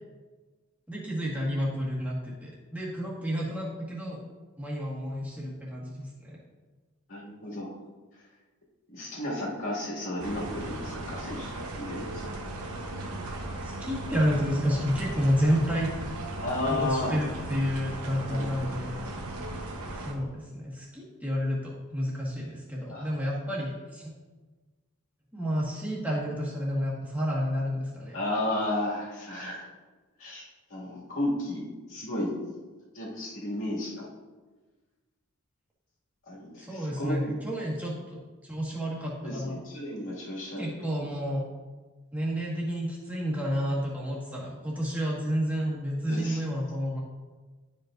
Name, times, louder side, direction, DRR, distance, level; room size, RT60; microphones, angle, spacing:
voice 1, 0.9-4.2 4.6-6.4 13.6-15.9 16.7-19.0 20.0-24.1 25.3-28.2 36.6-39.6 40.6-41.4 42.1-47.0, equal, 5° right, -5 dB, 1.6 m, -30 dB
voice 2, 7.1-7.7 8.9-12.3 16.4-17.2 18.1-18.5 22.9-23.1 28.1-29.7 30.2-32.3 32.9-34.1 36.3-37.3 39.2-40.7 46.1-46.4, left 1 dB, 60° left, -6 dB, 2.4 m, -33 dB
sound 1, 10.2-20.1, right 2 dB, 85° right, 1.1 m, -37 dB
11.5 x 5.2 x 2.6 m, 1.3 s
head